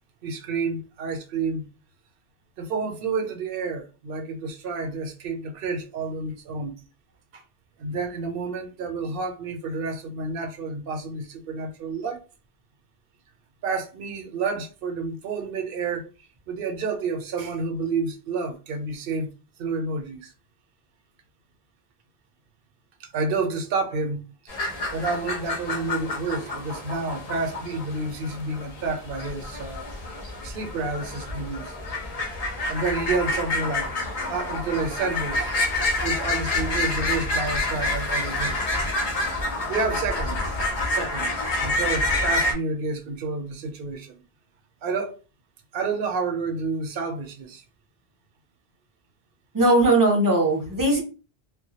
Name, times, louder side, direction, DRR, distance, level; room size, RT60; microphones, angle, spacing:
voice 1, 0.2-1.7 2.6-6.8 7.3-7.4 7.8-12.2 13.6-16.1 16.5-19.3 19.6-20.3 23.0-24.2 24.9-29.9 30.4-31.8 32.5-33.9 34.3-35.5 36.0-38.6 39.7-40.6 40.9-44.1 44.8-45.2 45.7-47.6, right 4 dB, 65° right, 0.7 m, -29 dB
sound 1, 24.5-42.5, left 2 dB, 45° left, 0.5 m, -28 dB
voice 2, 49.5-51.0, right 2 dB, 25° right, 0.6 m, -19 dB
2.2 x 2.0 x 2.7 m
omnidirectional pair, 1.1 m